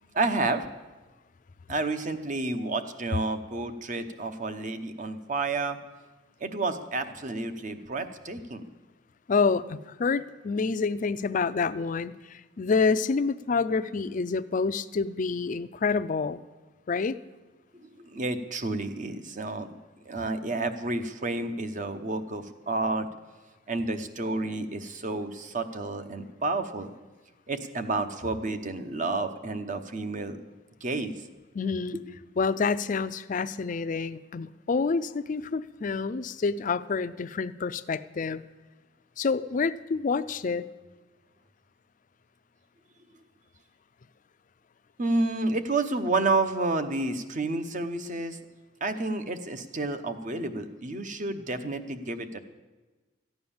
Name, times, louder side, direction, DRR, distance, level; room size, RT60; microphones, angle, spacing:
voice 1, 0.1-0.7 1.7-5.8 6.4-8.6 17.7-19.7 20.0-23.1 23.7-26.9 27.5-30.4 30.8-31.2 45.0-48.4 48.8-52.4, right 2 dB, 40° right, 9 dB, 0.9 m, -30 dB
voice 2, 9.3-16.4 16.9-17.2 31.5-32.0 32.4-38.4 39.2-40.7, left 4 dB, 40° left, 13 dB, 0.4 m, -28 dB
14.5 x 9.3 x 7.1 m, 1.2 s
head